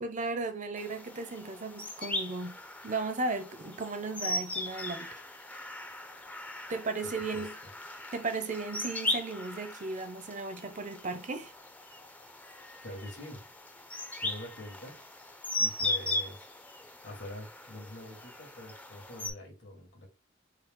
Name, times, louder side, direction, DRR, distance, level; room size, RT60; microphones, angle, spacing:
voice 1, 0.0-2.6 2.8-5.2 6.7-7.5 8.1-11.5, right 3 dB, 40° right, 0.6 m, -35 dB
sound 1, 0.8-19.3, left 1 dB, 10° left, 0.5 m, -38 dB
voice 2, 7.0-7.5 12.8-13.4 14.2-15.0 15.6-16.5 17.0-20.1, left 1 dB, 75° left, 1.8 m, -45 dB
4.6 x 2.1 x 3.7 m
head